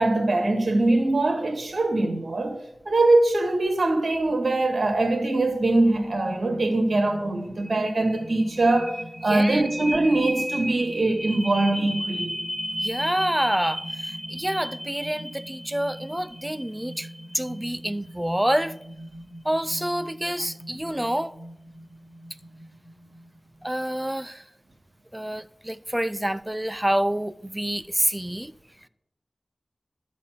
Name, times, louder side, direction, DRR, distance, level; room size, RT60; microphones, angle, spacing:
voice 1, 0.0-2.6 2.9-8.9 9.2-12.4, right 2 dB, 70° right, 1.7 m, -22 dB
sound 1, 5.5-23.2, equal, 30° left, 4.2 m, -36 dB
voice 2, 9.3-9.7 12.8-17.1 17.3-18.7 19.4-21.3 23.6-24.4 25.1-28.5, right 1 dB, 10° right, 0.5 m, -27 dB
11.5 x 4.2 x 7.9 m
wide cardioid pair, 55°, 0 cm